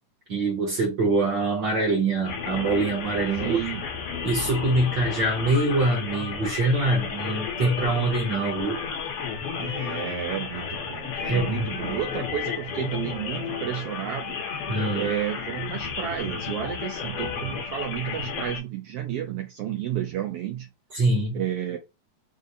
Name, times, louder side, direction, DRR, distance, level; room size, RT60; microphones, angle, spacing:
voice 1, 0.3-3.6 4.2-8.8 11.2-12.0 14.7-15.1 20.9-21.4, right 2 dB, 55° right, 1.3 m, -24 dB
sound 1, 2.2-18.6, left 6 dB, 65° left, 1.5 m, -33 dB
voice 2, 3.4-3.8 9.6-14.4 14.9-20.7 21.3-21.8, right 10 dB, 85° right, 1.3 m, -31 dB
5.0 x 2.1 x 4.0 m
omnidirectional pair, 3.3 m